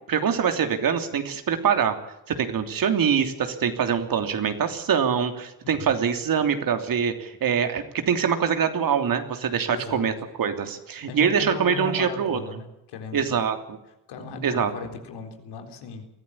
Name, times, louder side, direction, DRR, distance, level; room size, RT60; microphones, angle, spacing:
voice 1, 0.1-2.0 2.3-10.1 10.4-12.4 13.1-13.8 14.4-14.7, right 7 dB, 60° right, 6 dB, 3.1 m, -24 dB
voice 2, 9.7-10.1 11.1-13.4 14.1-16.1, left 5 dB, 85° left, 5 dB, 4.1 m, -37 dB
23.0 x 14.5 x 8.6 m, 0.88 s
cardioid pair, 90°, 39 cm